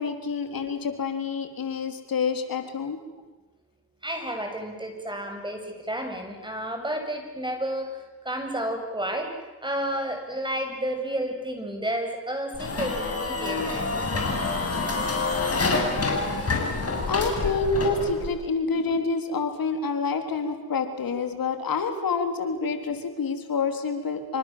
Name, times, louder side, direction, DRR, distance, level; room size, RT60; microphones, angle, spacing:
voice 1, 0.0-3.0 17.1-24.4, left 4 dB, 60° left, 7 dB, 3.7 m, -27 dB
voice 2, 4.0-9.3 9.6-14.3, right 1 dB, 10° right, 4 dB, 7.9 m, -31 dB
sound 1, 12.5-18.3, left 3 dB, 35° left, 7.6 m, -27 dB
27.5 x 25.5 x 7.6 m, 1.2 s
cardioid pair, 70°, 39 cm